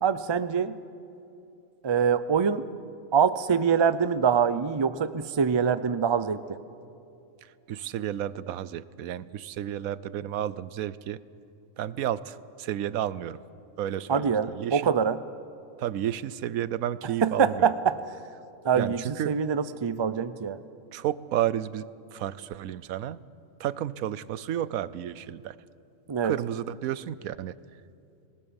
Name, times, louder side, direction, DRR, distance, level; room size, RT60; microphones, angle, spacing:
voice 1, 0.0-0.8 1.8-2.7 3.1-6.6 14.1-15.2 17.2-18.0 18.6-20.6 26.1-26.3, right 7 dB, 40° right, 13 dB, 0.4 m, -24 dB
voice 2, 7.7-11.2 11.8-13.4 13.8-14.3 14.6-14.9 15.8-17.7 18.8-19.3 20.9-23.2 23.6-25.5 26.2-27.5, right 11 dB, 85° right, 17 dB, 1.1 m, -31 dB
26.0 x 19.0 x 7.1 m, 2.8 s
omnidirectional pair, 1.4 m